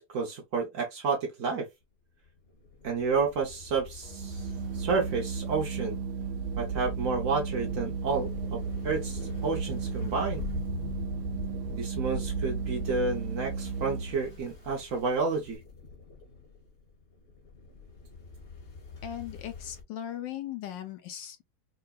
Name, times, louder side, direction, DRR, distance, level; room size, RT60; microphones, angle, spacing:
voice 1, 0.0-1.7 2.8-6.0 6.6-10.5 11.7-15.6, right 4 dB, 55° right, 0.9 m, -30 dB
sound 1, 2.2-19.8, left 5 dB, 40° left, 0.9 m, -44 dB
Organ, 4.1-14.4, right 5 dB, 75° right, 1.3 m, -34 dB
voice 2, 19.0-21.4, left 11 dB, 75° left, 1.1 m, -38 dB
5.6 x 2.2 x 2.4 m
omnidirectional pair, 2.3 m